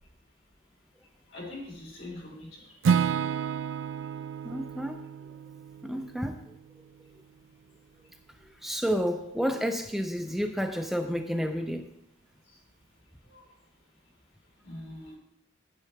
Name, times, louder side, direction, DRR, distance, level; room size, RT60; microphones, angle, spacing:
voice 1, 1.3-2.7 4.5-4.6 13.3-13.4 14.6-15.2, left 2 dB, 75° left, -2 dB, 3.5 m, -43 dB
Acoustic guitar / Strum, 2.8-6.9, right 7 dB, 75° right, 0.3 m, -30 dB
voice 2, 4.4-5.0 5.8-6.6 8.6-11.9, equal, ahead, 5 dB, 0.4 m, -30 dB
8.7 x 8.3 x 4.6 m, 0.80 s
head